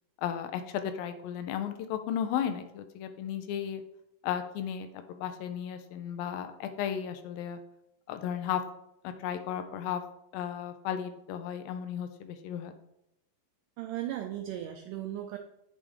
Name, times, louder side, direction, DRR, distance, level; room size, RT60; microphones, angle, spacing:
voice 1, 0.2-3.8 4.2-7.6 8.1-8.6 9.0-10.0 10.3-12.7, left 9 dB, 80° left, 9 dB, 2.4 m, -34 dB
voice 2, 13.8-15.4, right 12 dB, 85° right, 5 dB, 1.8 m, -36 dB
8.8 x 6.4 x 3.5 m, 0.79 s
omnidirectional pair, 4.2 m